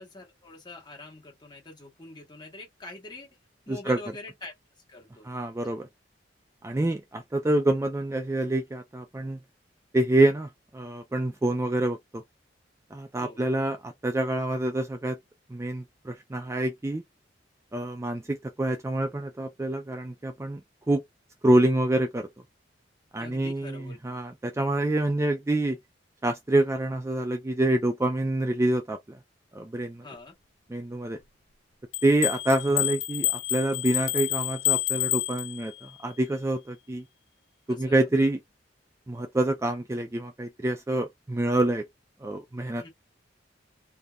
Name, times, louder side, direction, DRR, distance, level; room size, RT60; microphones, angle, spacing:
voice 1, 0.0-3.3 3.7-4.5 4.9-5.3 13.2-13.4 23.2-24.0 30.0-30.3 37.7-38.1 42.8-42.9, left 2 dB, 25° left, 1.6 m, -44 dB
voice 2, 5.3-5.9 6.6-9.4 9.9-12.2 12.9-15.2 15.5-17.0 17.7-20.6 20.9-21.0 21.4-22.3 23.1-25.8 26.2-29.2 29.5-30.0 30.7-31.2 32.0-37.0 37.7-38.4 39.1-41.8 42.2-42.9, right 1 dB, 15° right, 0.4 m, -26 dB
sound 1, 31.9-35.9, left 17 dB, 90° left, 0.5 m, -29 dB
3.4 x 2.8 x 2.3 m
head